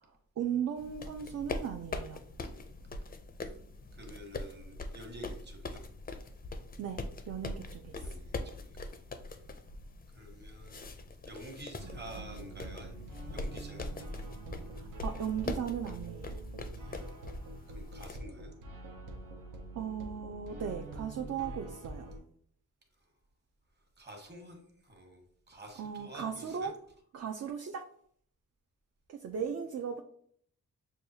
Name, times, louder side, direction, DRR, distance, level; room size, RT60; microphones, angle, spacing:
voice 1, 0.4-2.2 6.8-8.2 14.8-16.3 19.7-22.1 25.8-26.7 27.1-27.9 29.1-30.0, right 8 dB, 55° right, 0.4 m, -37 dB
sound 1, 0.8-18.2, left 2 dB, 30° left, 0.4 m, -42 dB
voice 2, 2.5-2.9 3.9-5.8 7.5-7.7 8.0-9.0 10.1-11.0 11.2-13.0 13.3-13.9 16.7-17.2 17.7-18.5 23.0-23.1 24.0-26.7, equal, 35° right, 1.2 m, -50 dB
sound 2, 11.8-22.2, right 2 dB, 85° right, 0.7 m, -45 dB
6.5 x 2.3 x 2.7 m
cardioid pair, 90°, 31 cm